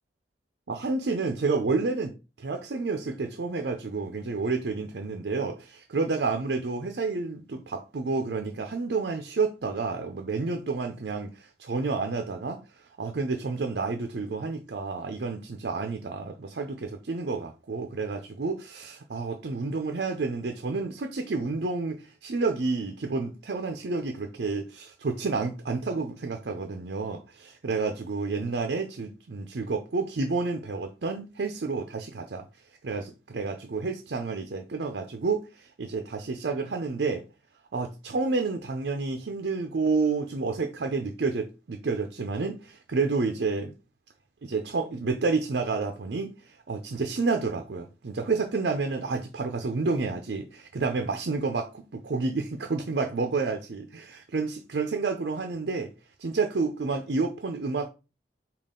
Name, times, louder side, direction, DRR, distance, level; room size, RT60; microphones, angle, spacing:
voice 1, 0.7-2.1 2.4-32.5 32.8-37.2 37.7-43.7 44.4-55.9 56.2-57.9, right 4 dB, 65° right, 0.5 m, -30 dB
5.3 x 2.4 x 3.7 m
head